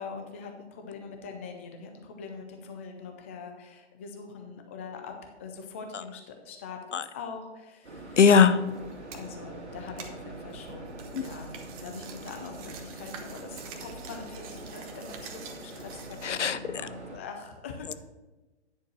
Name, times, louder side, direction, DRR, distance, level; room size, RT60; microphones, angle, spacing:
voice 1, 0.0-6.8 7.1-8.2 9.1-11.5 11.8-17.9, left 5 dB, 15° left, 4 dB, 0.3 m, -43 dB
sound 1, 7.8-17.2, right 2 dB, 75° right, 2.0 m, -43 dB
voice 2, 8.2-8.6 11.1-11.2 16.2-16.6, left 6 dB, 85° left, 13 dB, 0.6 m, -19 dB
sound 2, 8.7-9.3 10.0-16.5, right 6 dB, 30° right, 0.9 m, -47 dB
9.7 x 4.5 x 6.1 m, 1.2 s
figure-of-eight pair, 130°, 35 cm